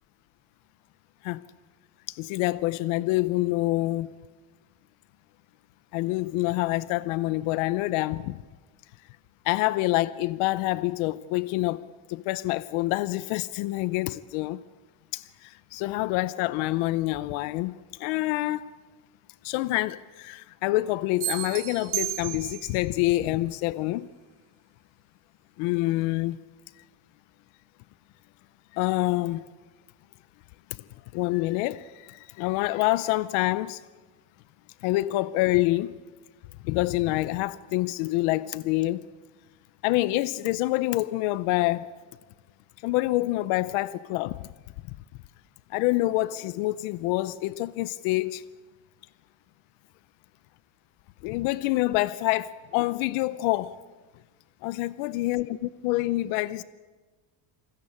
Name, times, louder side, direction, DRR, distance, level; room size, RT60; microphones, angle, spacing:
voice 1, 2.1-4.1 5.9-8.4 9.4-11.8 12.1-14.6 15.1-18.7 19.4-24.1 25.6-26.4 28.7-29.4 30.7-30.8 31.1-33.8 34.8-36.0 36.6-39.1 39.8-41.9 42.8-44.5 45.7-48.4 51.2-53.8 54.6-56.6, left 18 dB, 80° left, 0.8 m, -27 dB
sound 1, 21.2-22.8, right 16 dB, 55° right, 2.3 m, -32 dB
28.5 x 21.0 x 8.7 m
cardioid pair, 175°, 48 cm